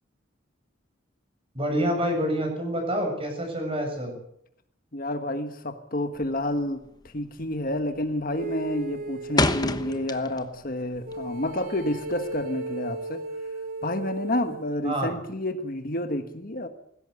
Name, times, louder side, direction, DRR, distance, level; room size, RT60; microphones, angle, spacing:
voice 1, 1.5-4.1 14.8-15.1, equal, 30° right, 3 dB, 7.4 m, -27 dB
voice 2, 4.9-6.8 7.1-13.2 13.8-16.7, left 1 dB, 45° left, 8 dB, 1.5 m, -29 dB
sound 1, 6.1-6.5 6.8-7.2 7.5-8.0 8.3-10.6 10.9-12.4, left 2 dB, 20° left, 1.1 m, -28 dB
sound 2, 8.4-10.0 11.0-14.6, right 2 dB, 50° right, 2.8 m, -36 dB
19.5 x 16.5 x 8.3 m, 0.71 s
head